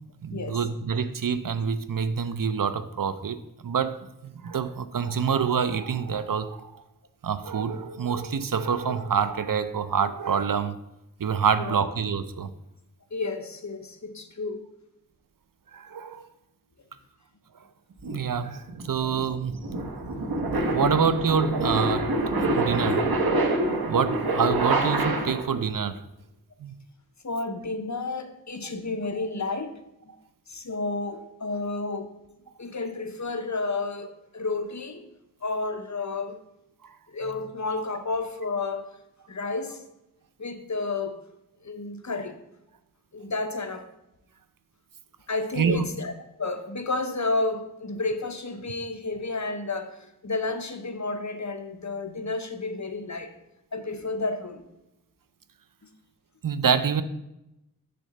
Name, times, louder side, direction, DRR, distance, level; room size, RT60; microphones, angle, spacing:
voice 1, 0.2-3.4 3.6-6.8 7.2-10.8 11.2-12.5 15.7-16.2 18.1-19.6 20.4-22.1 22.5-23.0 23.9-26.0 26.6-26.7 36.8-37.0 45.6-45.9 56.4-57.0, right 6 dB, 65° right, 12 dB, 0.5 m, -26 dB
voice 2, 13.1-14.6 19.0-19.1 27.2-29.8 30.1-30.2 30.5-32.1 32.6-35.0 35.4-36.4 37.1-38.9 39.3-39.8 40.4-41.2 41.6-42.4 43.1-43.9 45.3-46.1 46.4-53.3 53.7-54.6 55.8-55.9, left 3 dB, 50° left, 7 dB, 0.8 m, -31 dB
sound 1, 18.0-25.6, right 2 dB, 85° right, 1.0 m, -26 dB
6.8 x 3.8 x 6.4 m, 0.89 s
wide cardioid pair, 55°, 35 cm